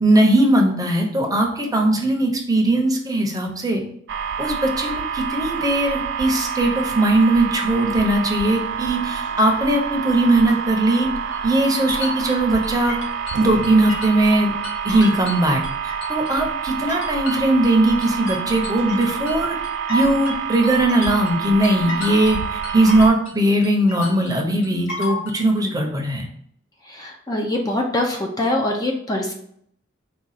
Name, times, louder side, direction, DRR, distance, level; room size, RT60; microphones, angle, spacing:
voice 1, 0.0-3.8 4.4-11.1 11.4-13.0 13.3-14.5 14.8-15.6 16.1-19.6 19.9-26.3, right 1 dB, 20° right, 2 dB, 0.7 m, -19 dB
sound 1, 4.1-23.1, right 7 dB, 60° right, 0.3 m, -28 dB
sound 2, 11.3-14.4 14.6-16.3 16.6-23.4 23.6-25.4, equal, 85° left, 1.7 m, -33 dB
voice 2, 26.9-29.3, left 1 dB, 20° left, 1 dB, 0.5 m, -23 dB
4.8 x 2.3 x 4.0 m, 0.68 s
head